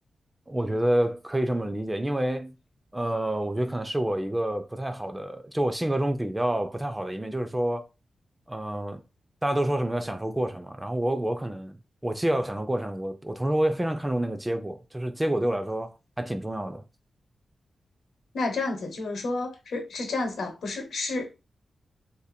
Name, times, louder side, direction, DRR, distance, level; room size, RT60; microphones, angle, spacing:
voice 1, 0.5-2.6 2.9-7.8 8.5-9.0 9.4-16.8, right 1 dB, 10° right, 0.3 m, -28 dB
voice 2, 18.3-21.4, left 3 dB, 85° left, 0.9 m, -30 dB
2.5 x 2.4 x 4.1 m
wide cardioid pair, 165°, 0 cm